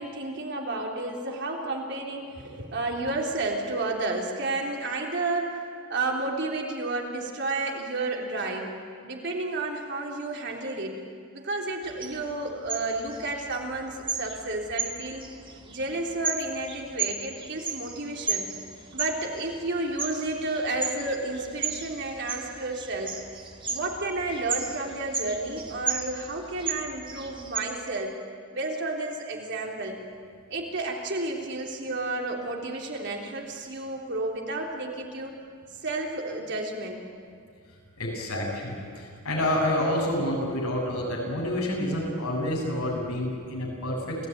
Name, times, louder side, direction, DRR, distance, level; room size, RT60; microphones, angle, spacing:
voice 1, 0.0-5.6 5.9-8.7 9.0-11.0 11.3-15.2 15.7-18.5 18.9-23.2 23.7-28.2 28.5-30.0 30.5-35.3 35.8-37.0, right 2 dB, 55° right, 0 dB, 3.4 m, -31 dB
sound 1, 11.8-27.6, right 5 dB, 20° right, 2.0 m, -35 dB
voice 2, 38.0-44.3, left 1 dB, 80° left, -1 dB, 7.3 m, -28 dB
28.0 x 17.5 x 9.5 m, 2.3 s
head